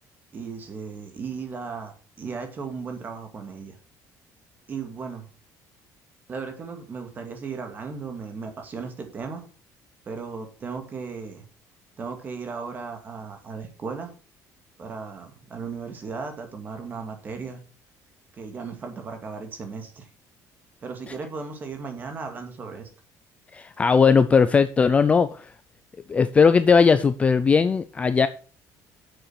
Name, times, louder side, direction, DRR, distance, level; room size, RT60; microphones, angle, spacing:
voice 1, 0.3-3.8 4.7-5.3 6.3-9.4 10.1-11.4 12.0-14.1 14.8-17.6 18.3-20.1 20.8-22.9, right 5 dB, 30° right, 5 dB, 2.2 m, -36 dB
voice 2, 23.5-25.5 26.1-28.3, left 5 dB, 20° left, 13 dB, 0.4 m, -18 dB
9.0 x 7.0 x 5.9 m, 0.38 s
cardioid pair, 165°, 7 cm